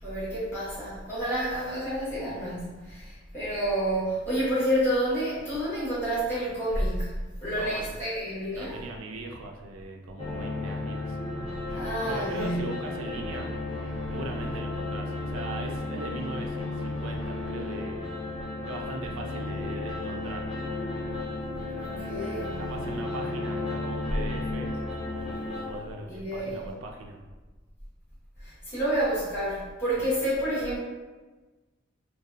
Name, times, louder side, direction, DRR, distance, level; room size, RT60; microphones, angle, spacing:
voice 1, 0.0-7.1 7.4-8.8 11.7-12.6 21.8-22.6 26.1-26.6 28.4-30.8, right 1 dB, 10° left, -13 dB, 1.0 m, -29 dB
voice 2, 7.5-7.9 8.5-13.5 14.1-18.1 18.7-20.5 22.6-24.7 25.2-27.2 30.0-30.1, right 2 dB, 80° right, 2 dB, 0.4 m, -40 dB
sound 1, 10.2-25.7, left 2 dB, 30° left, 0.4 m, -33 dB
2.5 x 2.2 x 2.3 m, 1.3 s
head